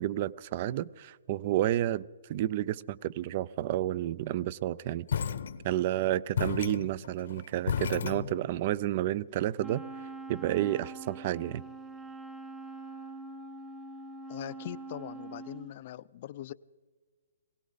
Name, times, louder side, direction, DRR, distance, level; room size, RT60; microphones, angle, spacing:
voice 1, 0.0-5.1 5.6-9.8 10.3-11.6, right 13 dB, 35° right, 0.4 m, -30 dB
sound 1, 5.1-6.0 6.4-8.7, left 7 dB, 60° left, 0.8 m, -33 dB
Wind instrument woodwind instrument, 9.6-15.7, right 3 dB, 5° right, 0.8 m, -44 dB
voice 2, 14.3-16.5, left 13 dB, 40° left, 0.4 m, -41 dB
20.0 x 17.0 x 4.0 m
hypercardioid pair, 160°, 0 cm